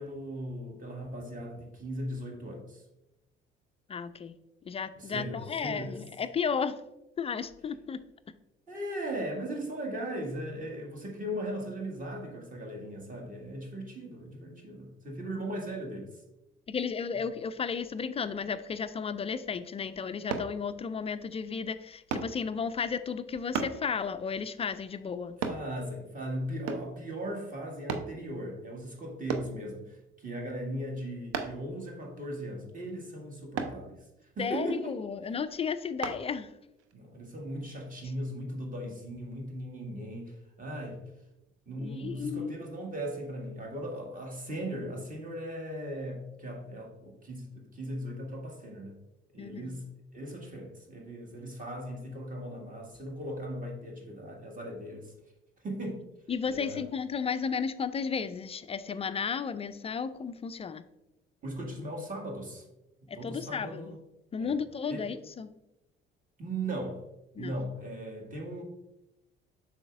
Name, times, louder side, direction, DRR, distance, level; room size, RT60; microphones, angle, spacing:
voice 1, 0.0-2.9 4.9-6.0 8.7-16.2 25.4-35.0 36.9-41.0 41.7-49.0 49.3-55.1 55.6-56.1 56.5-56.8 61.4-62.7 63.1-64.0 64.4-64.6 64.9-65.1 66.4-67.0 67.4-68.6, right 1 dB, 30° right, 0 dB, 1.8 m, -38 dB
voice 2, 3.9-4.3 4.6-6.8 7.2-8.0 16.7-25.4 34.4-36.5 41.8-42.5 49.4-49.8 56.3-60.8 63.1-64.0 64.3-65.5 67.4-67.6, left 6 dB, 20° left, 12 dB, 0.3 m, -33 dB
sound 1, 20.3-20.5 22.1-22.3 23.5-23.8 25.4-25.6 26.7-27.0 27.9-28.1 29.3-29.5 31.3-31.7 33.6-33.8 36.0-36.2 36.8-36.9, right 5 dB, 55° right, 0.7 m, -33 dB
7.6 x 6.1 x 2.4 m, 0.93 s
figure-of-eight pair, 50°, 29 cm